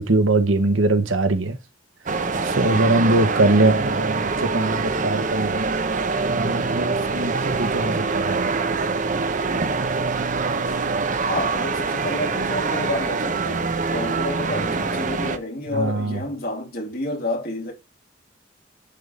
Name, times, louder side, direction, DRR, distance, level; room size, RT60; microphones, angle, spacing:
voice 1, 0.0-1.6 2.4-5.7 6.3-8.5 15.7-16.2, right 2 dB, 90° right, 1.2 m, -22 dB
sound 1, 2.1-15.4, right 4 dB, 40° right, 0.7 m, -24 dB
voice 2, 11.2-17.7, left 2 dB, 50° left, 2.9 m, -30 dB
10.5 x 3.6 x 4.0 m
head